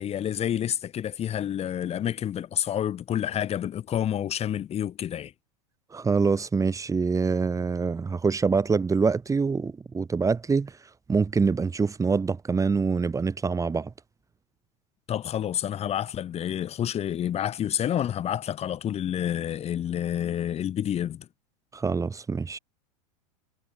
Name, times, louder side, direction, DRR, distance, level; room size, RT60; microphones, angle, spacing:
voice 1, 0.0-5.3 15.1-21.3, left 10 dB, 30° left, 6.2 m, -29 dB
voice 2, 5.9-10.8 11.1-13.9 21.7-22.6, right 4 dB, 15° right, 5.4 m, -25 dB
figure-of-eight pair, 95°, 21 cm